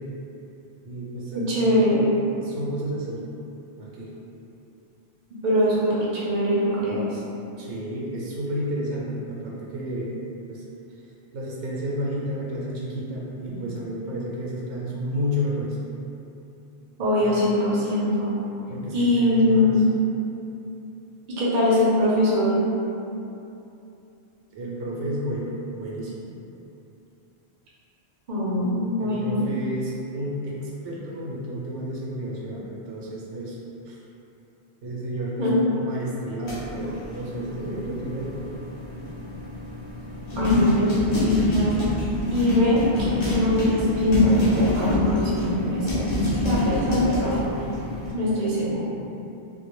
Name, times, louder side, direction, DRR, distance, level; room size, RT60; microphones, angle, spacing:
voice 1, 0.8-1.7 2.1-3.2 3.8-4.1 7.6-10.2 10.5-10.6 11.3-15.8 17.2-17.3 18.7-19.7 24.5-26.3 29.0-33.6 33.9-34.0 34.8-38.5, equal, 90° right, -5 dB, 0.9 m, -31 dB
voice 2, 1.4-2.0 5.4-7.2 17.0-18.4 18.9-19.9 21.4-22.6 28.3-29.5 35.4-35.6 40.4-41.9 42.3-46.1 46.4-47.4 48.1-48.8, left 1 dB, 50° right, -7 dB, 0.6 m, -22 dB
sound 1, 36.4-48.1, left 1 dB, 50° left, 0.5 m, -26 dB
2.2 x 2.1 x 2.9 m, 2.8 s
omnidirectional pair, 1.1 m